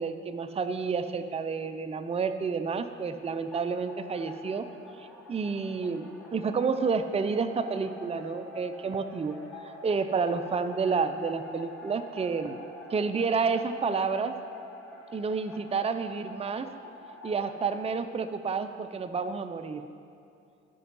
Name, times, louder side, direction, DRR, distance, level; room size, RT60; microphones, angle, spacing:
voice 1, 0.0-4.7 5.3-9.4 9.8-12.6 12.9-14.3 15.1-16.7 17.2-19.8, right 5 dB, 20° right, 8 dB, 0.5 m, -30 dB
sound 1, 3.2-17.8, left 2 dB, 5° left, 2.5 m, -47 dB
11.0 x 5.4 x 5.4 m, 2.6 s
hypercardioid pair, 55°, 32 cm